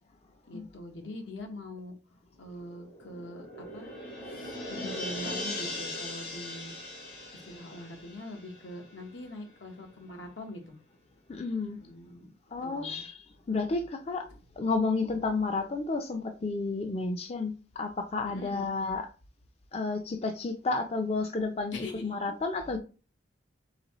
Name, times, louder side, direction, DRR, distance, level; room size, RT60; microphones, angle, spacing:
voice 1, 0.5-1.9 2.4-3.9 4.3-6.7 7.3-10.8 11.8-12.3 12.6-13.0 18.2-18.7 21.7-22.0, left 1 dB, 80° left, 1.0 m, -43 dB
sound 1, 2.4-9.4 9.7-9.8, left 1 dB, 55° left, 1.3 m, -40 dB
voice 2, 11.3-11.8 12.5-13.2 13.5-14.3 14.6-19.1 19.7-22.8, left 3 dB, 35° left, 0.4 m, -31 dB
4.0 x 3.5 x 3.0 m
head